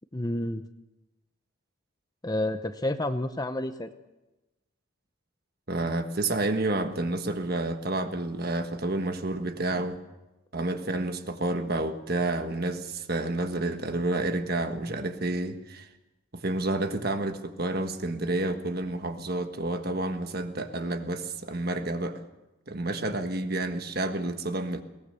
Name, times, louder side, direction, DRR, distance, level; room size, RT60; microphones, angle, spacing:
voice 1, 0.1-0.7 2.2-3.9, left 1 dB, 20° left, 9 dB, 0.8 m, -29 dB
voice 2, 5.7-10.0 10.5-15.9 16.3-22.2 22.7-24.8, right 2 dB, 45° right, 7 dB, 1.5 m, -30 dB
22.0 x 18.5 x 6.9 m, 1.0 s
head